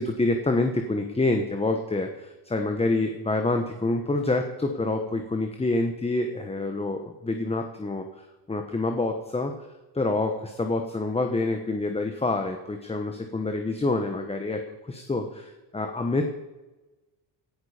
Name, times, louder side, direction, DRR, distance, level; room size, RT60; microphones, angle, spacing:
voice 1, 0.0-9.5 9.9-14.6 14.9-16.2, left 2 dB, 15° left, 5 dB, 1.3 m, -27 dB
17.5 x 11.0 x 5.1 m, 1.1 s
cardioid pair, 115°, 45 cm